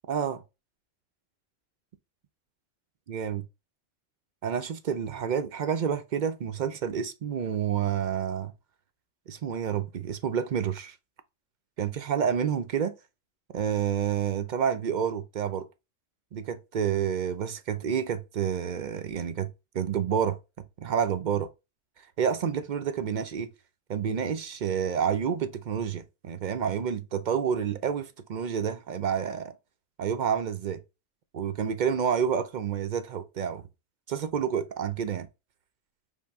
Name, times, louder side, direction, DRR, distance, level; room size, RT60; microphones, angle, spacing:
voice 1, 0.1-0.4 3.1-3.4 4.4-8.5 9.3-11.0 11.8-13.0 13.5-15.7 16.3-20.4 20.8-21.5 22.2-23.5 23.9-29.5 30.0-30.8 31.3-33.6 34.1-35.3, right 8 dB, 55° right, 0.5 m, -29 dB
5.5 x 2.1 x 4.6 m
omnidirectional pair, 1.2 m